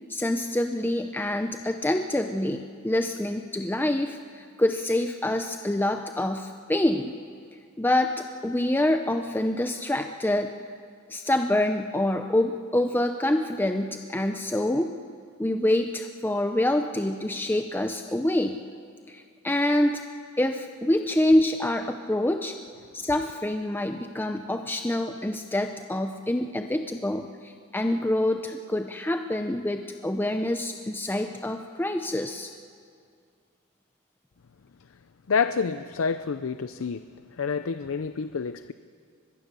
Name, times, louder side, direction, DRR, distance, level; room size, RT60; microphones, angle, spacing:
voice 1, 0.1-7.1 7.8-10.5 11.1-14.9 15.4-18.6 19.1-20.0 20.4-22.6 22.9-32.5, left 1 dB, 10° left, 6 dB, 0.6 m, -26 dB
voice 2, 35.3-37.0 37.4-38.7, left 5 dB, 80° left, 11 dB, 0.5 m, -28 dB
24.0 x 21.5 x 6.9 m, 2.2 s
head